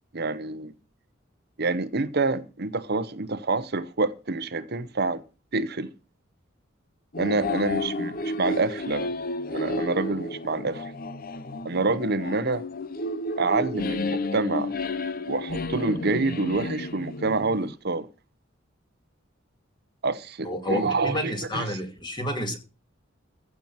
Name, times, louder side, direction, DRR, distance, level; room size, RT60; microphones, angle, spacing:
voice 1, 0.1-0.7 1.6-5.2 5.5-5.9 7.2-9.1 9.5-10.9 11.6-12.6 13.4-14.7 15.3-18.1 20.0-21.7, right 3 dB, 55° right, 0.9 m, -27 dB
sound 1, 7.1-17.7, left 2 dB, 45° left, 0.8 m, -31 dB
voice 2, 20.4-22.6, left 1 dB, 20° left, 2.5 m, -30 dB
15.5 x 5.9 x 7.3 m
head